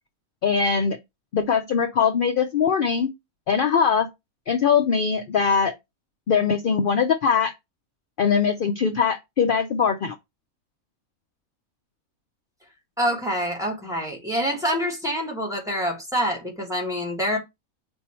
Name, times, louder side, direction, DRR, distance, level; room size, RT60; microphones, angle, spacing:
voice 1, 0.4-1.0 1.3-3.1 3.5-4.1 4.5-5.7 6.3-7.5 8.2-10.1, left 6 dB, 60° left, 0.5 m, -21 dB
voice 2, 13.0-17.4, equal, ahead, 1.4 m, -26 dB
4.1 x 2.7 x 4.3 m
omnidirectional pair, 1.5 m